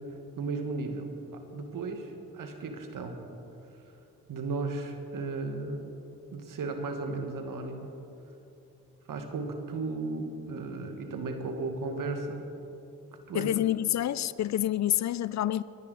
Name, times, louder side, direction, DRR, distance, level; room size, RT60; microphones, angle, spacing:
voice 1, 0.4-3.2 4.3-5.9 6.3-7.9 9.1-12.5 13.3-13.5, right 3 dB, 65° right, 1.7 m, -35 dB
voice 2, 13.3-15.6, left 12 dB, 55° left, 0.5 m, -28 dB
22.0 x 9.8 x 4.0 m
supercardioid pair, 55°, 34 cm